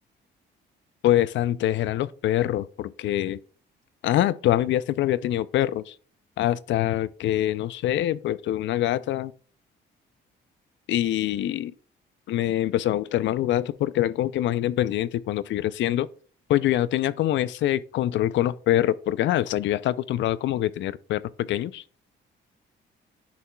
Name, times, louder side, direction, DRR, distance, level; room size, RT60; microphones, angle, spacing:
voice 1, 1.0-3.4 4.0-5.9 6.4-9.3 10.9-11.7 12.3-16.1 16.5-21.8, left 13 dB, 70° left, 0.4 m, -24 dB
10.0 x 4.2 x 2.3 m
cardioid pair, 90°, 20 cm